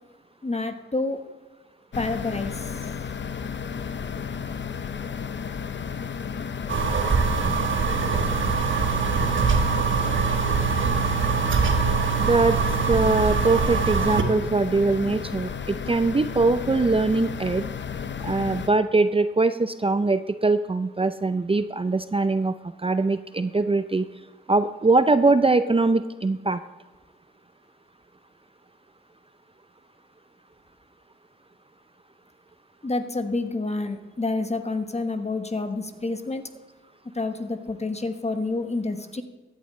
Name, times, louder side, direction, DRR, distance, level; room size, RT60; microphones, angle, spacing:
voice 1, 0.4-1.2 1.9-2.8 32.8-36.5 37.1-39.2, left 3 dB, 30° left, 8 dB, 1.2 m, -28 dB
sound 1, 1.9-18.7, left 6 dB, 60° left, 0.7 m, -33 dB
sound 2, 6.7-14.2, right 5 dB, 70° right, 1.2 m, -23 dB
voice 2, 12.2-12.6 12.9-17.6 18.2-22.6 22.8-24.1 24.5-26.6, right 3 dB, 25° right, 11 dB, 0.6 m, -22 dB
15.0 x 10.5 x 3.2 m, 1.2 s
cardioid pair, 45°, 21 cm